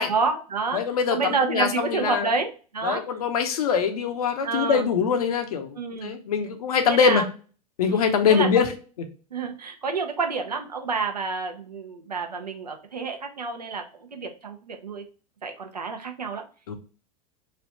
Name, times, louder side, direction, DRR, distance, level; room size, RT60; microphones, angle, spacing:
voice 1, 0.0-0.8 1.1-3.0 4.4-4.9 5.8-6.1 6.9-7.3 7.9-8.7 9.3-13.8 14.1-15.0 15.4-16.4, right 4 dB, 85° right, 5 dB, 0.6 m, -28 dB
voice 2, 0.7-2.3 2.8-7.2 7.8-8.7 16.7-16.8, left 6 dB, 70° left, 6 dB, 0.7 m, -23 dB
3.2 x 2.4 x 4.0 m, 0.38 s
figure-of-eight pair, 90°, 20 cm